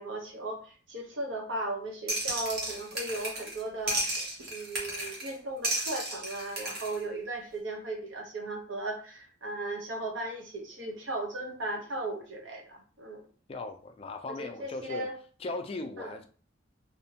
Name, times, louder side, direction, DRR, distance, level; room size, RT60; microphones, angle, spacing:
voice 1, 0.0-13.2 14.4-15.2 16.0-16.1, right 2 dB, 85° right, 1 dB, 0.8 m, -37 dB
sound 1, 2.1-3.6 3.9-5.3 5.6-7.0, right 1 dB, 55° right, 0.8 m, -33 dB
voice 2, 13.5-15.1 15.4-16.3, left 2 dB, 30° left, 5 dB, 0.3 m, -38 dB
2.6 x 2.1 x 2.8 m, 0.39 s
head